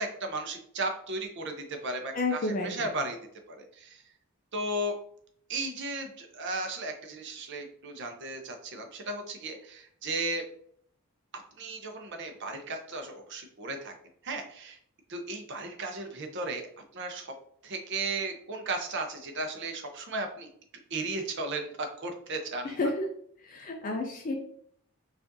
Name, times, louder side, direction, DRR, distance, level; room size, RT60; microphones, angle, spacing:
voice 1, 0.0-3.2 3.5-4.0 4.5-5.0 5.5-10.4 11.6-13.9 14.2-14.8 15.1-16.7 16.9-17.3 17.6-20.5 20.9-22.8, right 2 dB, 50° right, 4 dB, 0.6 m, -35 dB
voice 2, 2.1-2.9 22.6-23.1 23.4-24.4, left 2 dB, 35° left, 2 dB, 0.4 m, -31 dB
4.9 x 2.5 x 2.6 m, 0.63 s
head